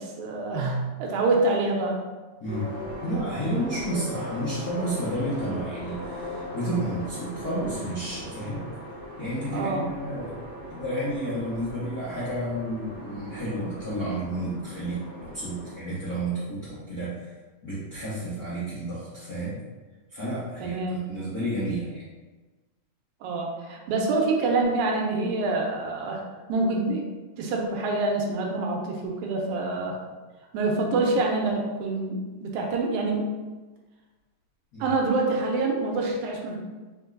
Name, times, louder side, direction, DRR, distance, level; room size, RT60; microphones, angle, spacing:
voice 1, 0.0-2.0 9.5-9.9 20.6-21.1 23.2-26.2 26.5-27.1 27.4-30.0 30.5-33.3 34.8-36.6, right 3 dB, 80° right, 0 dB, 2.0 m, -26 dB
voice 2, 2.4-2.7 3.0-8.6 9.2-10.3 10.7-17.3 17.6-19.6 20.1-22.0 34.7-34.9, right 1 dB, 75° left, -10 dB, 0.8 m, -31 dB
sound 1, 2.5-15.7, equal, 35° right, 1.0 m, -39 dB
4.5 x 3.4 x 2.5 m, 1.3 s
omnidirectional pair, 3.5 m